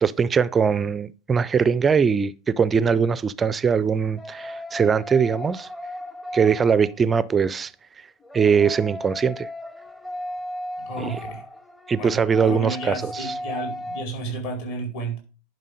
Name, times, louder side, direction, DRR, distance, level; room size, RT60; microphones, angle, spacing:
voice 1, 0.0-5.7 6.3-7.7 8.3-9.5 11.0-11.1 11.9-13.3, right 6 dB, 15° right, 0.4 m, -21 dB
sound 1, 4.2-7.3 8.2-14.0, equal, 10° left, 0.8 m, -36 dB
voice 2, 10.8-11.4 12.0-15.2, right 2 dB, 55° left, 4.5 m, -32 dB
11.0 x 5.4 x 5.2 m
figure-of-eight pair, 90°, 0 cm